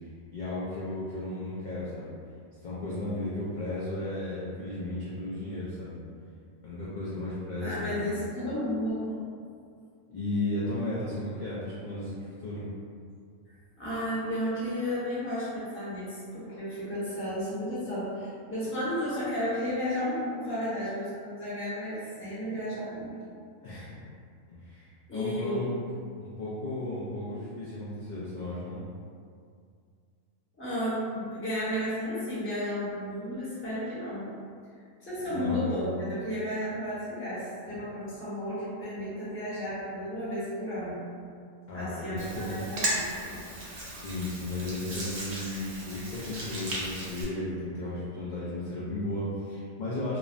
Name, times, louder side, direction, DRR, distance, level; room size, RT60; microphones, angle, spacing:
voice 1, 0.3-2.1 2.6-6.0 6.6-8.2 10.1-12.7 23.6-24.0 24.5-25.7 26.2-28.8 35.3-35.8 41.7-42.6 43.9-50.2, left 2 dB, 65° left, -9 dB, 0.4 m, -34 dB
voice 2, 7.6-9.2 13.8-23.2 25.1-25.7 30.6-34.3 35.1-41.0 41.7-43.4, equal, 10° left, -11 dB, 0.7 m, -33 dB
Hands, 42.2-47.2, right 1 dB, 60° right, 0.8 m, -36 dB
3.1 x 2.0 x 2.4 m, 2.2 s
omnidirectional pair, 1.3 m